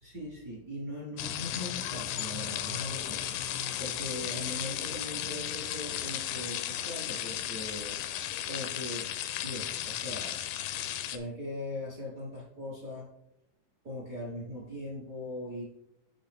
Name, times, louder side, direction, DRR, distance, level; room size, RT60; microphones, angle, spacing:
voice 1, 0.0-3.4 3.8-8.0 8.4-9.1 9.4-10.4 11.1-13.1 13.8-15.6, left 1 dB, 45° right, -5 dB, 1.0 m, -40 dB
sound 1, 1.2-11.2, left 11 dB, 80° left, 2.1 m, -35 dB
8.9 x 5.7 x 3.5 m, 0.78 s
omnidirectional pair, 4.2 m